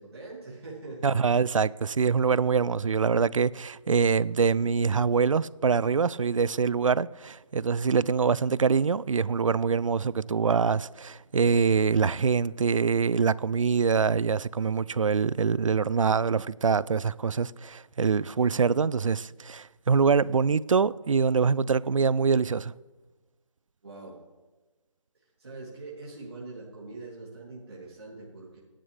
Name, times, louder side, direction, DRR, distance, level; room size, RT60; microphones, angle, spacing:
voice 1, 0.0-1.4 23.8-24.2 25.4-28.6, right 3 dB, 45° right, 3.1 m, -43 dB
voice 2, 1.0-22.7, right 5 dB, 70° right, 0.4 m, -24 dB
16.5 x 11.5 x 3.4 m
figure-of-eight pair, 175°, 17 cm